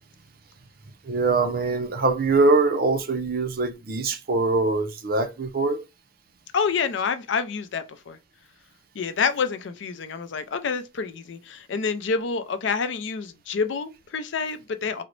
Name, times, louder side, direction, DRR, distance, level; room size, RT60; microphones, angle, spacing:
voice 1, 1.0-5.8, right 3 dB, 50° right, 0.6 m, -23 dB
voice 2, 6.5-8.2 8.9-15.0, left 5 dB, 75° left, 0.4 m, -28 dB
3.8 x 2.1 x 3.0 m
head